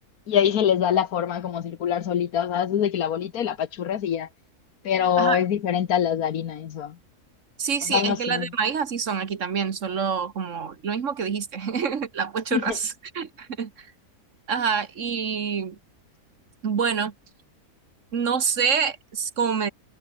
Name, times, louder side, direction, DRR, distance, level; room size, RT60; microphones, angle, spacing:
voice 1, 0.3-4.3 4.8-7.0 7.9-8.5 12.5-12.8, left 9 dB, 70° left, 1.5 m, -24 dB
voice 2, 7.6-13.9 14.5-15.8 16.6-17.1 18.1-19.7, right 6 dB, 55° right, 1.6 m, -26 dB
omnidirectional pair, 1.6 m